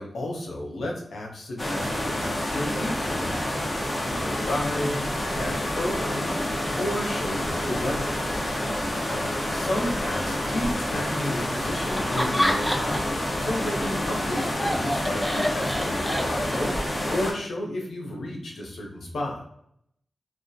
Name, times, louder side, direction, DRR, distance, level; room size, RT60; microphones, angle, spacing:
voice 1, 0.0-3.6 4.0-8.2 9.1-9.2 9.5-13.1 13.4-19.4, left 1 dB, 85° left, -1 dB, 0.6 m, -32 dB
sound 1, 1.6-17.3, left 1 dB, 45° left, 0.7 m, -28 dB
Laughter, 11.9-13.2 13.5-16.7, equal, 10° left, 0.5 m, -28 dB
2.3 x 2.0 x 2.6 m, 0.71 s
cardioid pair, 45°, 0 cm